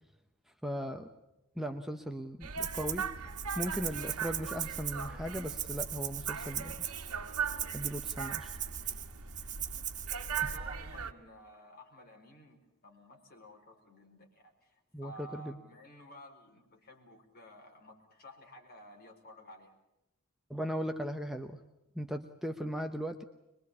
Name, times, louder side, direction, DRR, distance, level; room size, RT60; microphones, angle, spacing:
voice 1, 0.6-1.1 1.6-3.1 3.5-6.9 7.7-8.6 8.8-9.0 14.9-15.6 20.5-21.6 21.9-23.2, equal, ahead, 5 dB, 0.9 m, -38 dB
sound 1, 2.4-11.1, right 6 dB, 90° right, 1.5 m, -39 dB
Rattle (instrument), 2.6-3.1 3.4-10.6, right 11 dB, 35° right, 1.0 m, -39 dB
voice 2, 9.4-19.8, equal, 45° left, 2 dB, 4.8 m, -54 dB
23.5 x 22.5 x 8.5 m, 0.91 s
head